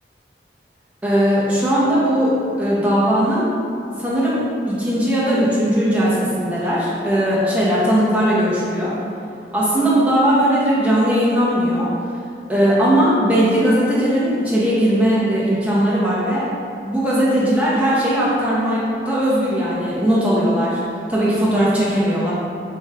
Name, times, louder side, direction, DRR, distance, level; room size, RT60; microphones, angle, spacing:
voice 1, 1.0-2.3 2.6-3.5 4.0-4.4 4.7-8.9 9.5-11.9 12.5-16.5 16.8-20.8 21.1-22.3, equal, 5° right, -9 dB, 0.8 m, -18 dB
3.5 x 3.1 x 4.4 m, 2.6 s
head